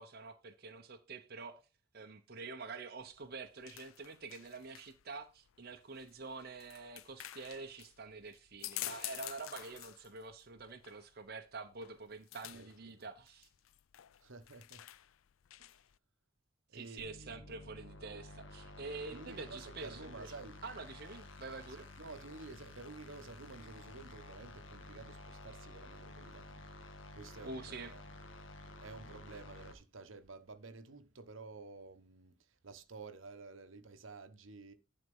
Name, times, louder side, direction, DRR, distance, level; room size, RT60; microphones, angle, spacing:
voice 1, 0.0-1.6 1.9-13.5 16.7-20.3 20.6-21.9 27.4-27.9, right 4 dB, 50° right, 0.9 m, -47 dB
sound 1, 3.0-16.0, left 15 dB, 90° left, 0.4 m, -50 dB
voice 2, 12.5-13.0 14.2-14.8 15.6-15.7 16.7-17.5 19.1-20.6 22.0-28.1 28.8-34.7, right 3 dB, 80° right, 1.1 m, -51 dB
sound 2, 17.0-29.7, left 2 dB, 70° left, 1.5 m, -52 dB
11.0 x 4.4 x 5.4 m
head